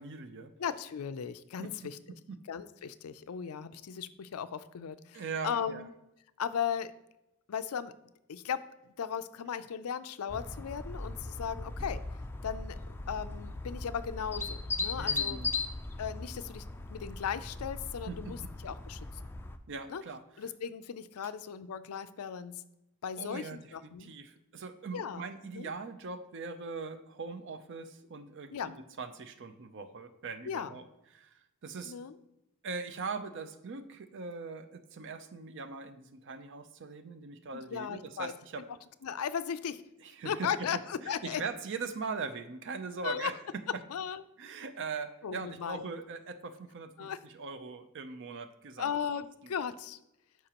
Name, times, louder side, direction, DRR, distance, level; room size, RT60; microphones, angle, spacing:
voice 1, 0.0-0.5 1.6-1.7 2.3-2.4 5.1-5.8 15.0-15.6 18.1-18.5 19.7-20.2 23.2-30.8 31.1-31.9 32.6-38.6 40.0-40.7 41.0-43.4 44.4-48.9 49.4-49.5, right 4 dB, 55° right, 10 dB, 0.5 m, -41 dB
voice 2, 0.6-2.0 2.5-5.9 6.4-6.9 7.5-7.9 8.3-12.0 12.4-12.8 13.1-15.4 16.0-18.4 18.6-19.1 19.9-20.0 20.4-22.6 23.0-24.1 24.9-25.2 25.5-25.7 28.5-28.7 30.5-30.8 31.8-32.2 37.5-38.3 39.0-39.8 40.2-41.4 43.0-43.3 43.9-44.2 45.2-45.8 47.0-47.2 48.8-50.0, left 7 dB, 75° left, 13 dB, 0.4 m, -37 dB
sound 1, 10.3-19.6, left 3 dB, 10° left, 0.3 m, -38 dB
11.5 x 4.9 x 2.9 m, 0.88 s
head